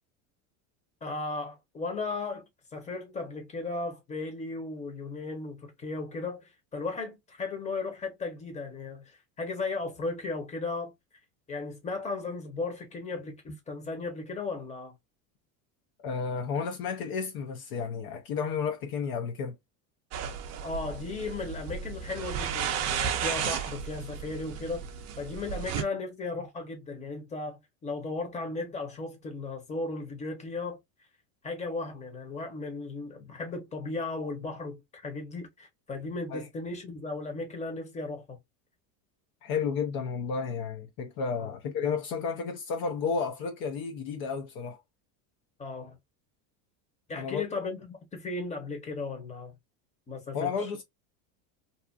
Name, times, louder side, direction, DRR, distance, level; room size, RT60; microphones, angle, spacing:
voice 1, 1.0-2.4 2.7-9.1 9.4-10.9 11.5-14.9 20.6-24.8 25.2-30.8 31.4-38.4 41.4-41.5 45.6-46.0 47.1-49.5 50.1-50.7, left 3 dB, 15° left, 0.8 m, -36 dB
voice 2, 16.0-19.6 36.3-36.5 39.4-44.8 47.1-47.4 50.3-50.8, left 5 dB, 50° left, 0.6 m, -32 dB
sound 1, 20.1-25.8, right 8 dB, 35° right, 0.5 m, -34 dB
2.7 x 2.4 x 2.4 m
supercardioid pair, 125°, 46 cm